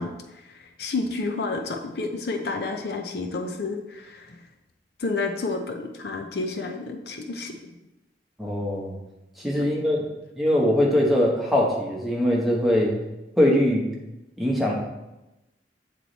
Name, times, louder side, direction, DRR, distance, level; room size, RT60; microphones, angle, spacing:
voice 1, 0.0-4.4 5.0-7.6 9.6-9.7, left 3 dB, 65° left, 5 dB, 0.5 m, -30 dB
voice 2, 8.4-8.9 9.4-10.0 10.4-12.9 13.4-13.8 14.4-14.7, left 1 dB, ahead, -3 dB, 1.0 m, -21 dB
8.3 x 3.1 x 4.0 m, 0.99 s
head